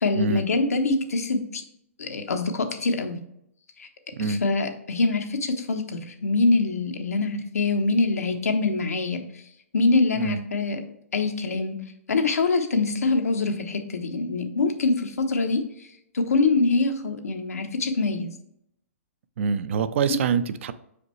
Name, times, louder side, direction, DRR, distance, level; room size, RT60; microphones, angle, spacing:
voice 1, 0.0-1.6 2.0-3.2 3.8-3.9 4.2-9.2 9.7-10.8 11.1-11.8 12.1-15.9 16.1-18.3, left 3 dB, 90° left, 4 dB, 1.0 m, -24 dB
voice 2, 19.4-20.7, right 5 dB, 55° right, 13 dB, 0.5 m, -25 dB
6.0 x 5.0 x 3.1 m, 0.75 s
hypercardioid pair, 145°, 8 cm